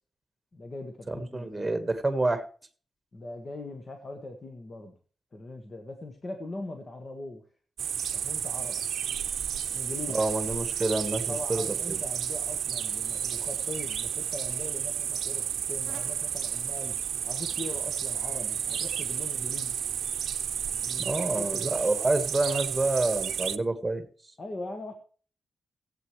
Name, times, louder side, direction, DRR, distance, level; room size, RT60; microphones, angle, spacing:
voice 1, 0.5-1.8 3.1-4.9 5.3-7.4 8.1-8.8 9.7-10.2 11.3-16.9 17.2-19.7 20.8-21.6 24.4-24.9, left 2 dB, 40° left, 4 dB, 1.4 m, -41 dB
voice 2, 1.1-2.4 10.1-12.0 21.0-24.0, right 2 dB, 15° right, 8 dB, 1.6 m, -28 dB
sound 1, 7.8-23.6, right 9 dB, 90° right, 0.6 m, -32 dB
17.5 x 8.3 x 3.2 m, 0.41 s
wide cardioid pair, 115°, 0 cm